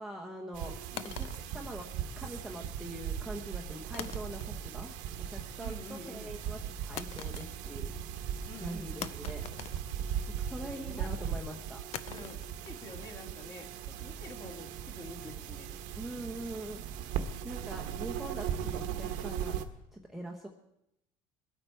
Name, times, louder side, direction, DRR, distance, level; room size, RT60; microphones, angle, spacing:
voice 1, 0.0-0.7 1.0-1.9 2.2-4.9 5.3-7.9 8.6-9.4 10.3-11.8 16.0-16.8 17.4-19.6 19.9-20.5, right 1 dB, ahead, 0 dB, 1.0 m, -43 dB
sound 1, 0.5-19.6, right 8 dB, 75° right, 1.2 m, -38 dB
sound 2, 1.0-2.4 3.9-4.8 5.1-5.6 7.0-7.9 8.2-8.3 9.0-10.5 11.9-15.0, left 11 dB, 50° left, 0.6 m, -45 dB
voice 2, 5.6-6.3 8.4-9.2 10.5-11.4 12.0-12.4 12.6-15.7, left 2 dB, 30° left, 2 dB, 2.5 m, -48 dB
sound 3, 12.0-17.4, right 7 dB, 40° right, 0.7 m, -54 dB
22.0 x 8.8 x 4.6 m, 0.84 s
cardioid pair, 145°, 14 cm